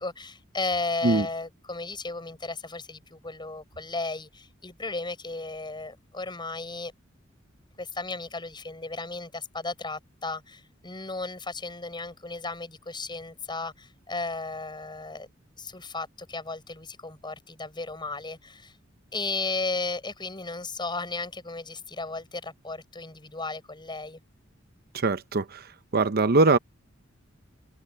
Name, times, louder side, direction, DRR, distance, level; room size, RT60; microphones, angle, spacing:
voice 1, 0.0-6.9 7.8-15.3 15.6-18.7 19.1-24.2, left 3 dB, 25° left, 6.7 m, -34 dB
voice 2, 24.9-25.6 25.9-26.6, right 3 dB, 50° right, 0.8 m, -22 dB
open air
head